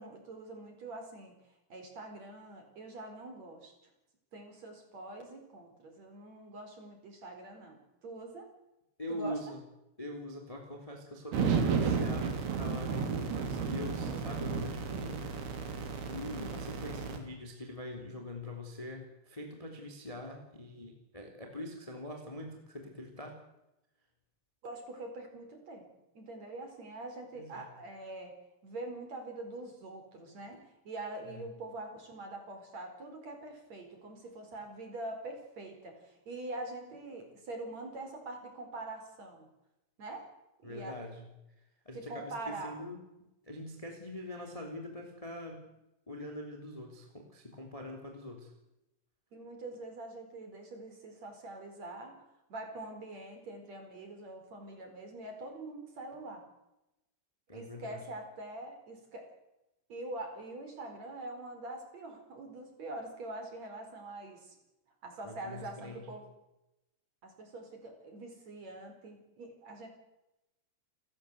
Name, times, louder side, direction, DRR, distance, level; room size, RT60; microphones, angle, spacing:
voice 1, 0.0-1.3 1.7-3.7 4.3-8.5 9.1-9.4 24.6-25.8 26.2-28.3 28.6-39.5 40.0-40.2 40.6-41.0 41.9-42.7 49.3-56.4 57.5-59.3 59.9-64.6 65.0-66.3 67.2-69.9, right 2 dB, 35° right, 4 dB, 5.3 m, -44 dB
voice 2, 9.0-9.6 10.0-15.7 16.1-23.4 27.3-27.6 31.3-31.4 40.6-41.3 41.8-45.7 46.1-48.5 57.5-58.0 65.2-66.1, left 1 dB, 10° left, 3 dB, 2.5 m, -43 dB
sound 1, 11.3-17.2, right 5 dB, 60° right, 4.7 m, -33 dB
30.0 x 14.5 x 8.1 m, 0.93 s
omnidirectional pair, 5.5 m